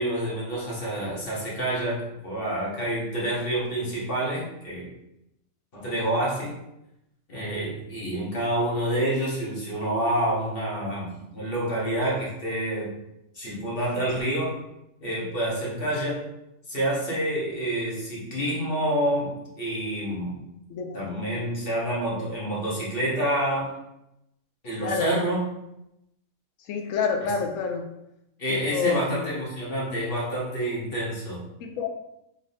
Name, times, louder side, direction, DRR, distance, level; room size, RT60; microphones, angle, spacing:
voice 1, 0.0-4.9 5.7-6.5 7.3-13.0 13.3-14.5 15.0-16.3 16.7-20.4 20.9-23.7 24.6-25.4 27.2-27.3 28.4-31.4, right 1 dB, 40° left, -5 dB, 1.3 m, -28 dB
voice 2, 20.7-21.3 24.8-25.1 26.7-27.8 28.5-29.3 31.6-31.9, left 6 dB, 70° left, 4 dB, 0.9 m, -28 dB
4.0 x 3.5 x 2.7 m, 0.85 s
omnidirectional pair, 1.6 m